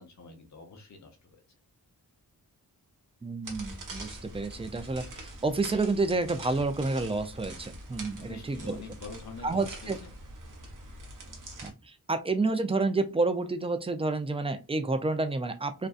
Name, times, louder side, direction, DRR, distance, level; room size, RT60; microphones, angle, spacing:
voice 1, 0.0-1.4 8.2-10.1, left 4 dB, 45° left, 0.7 m, -46 dB
voice 2, 3.2-8.8 9.4-10.0 11.6-15.9, right 3 dB, 15° right, 0.3 m, -29 dB
sound 1, 3.4-11.7, right 1 dB, 55° right, 0.7 m, -44 dB
2.5 x 2.2 x 2.3 m
wide cardioid pair, 75°, 39 cm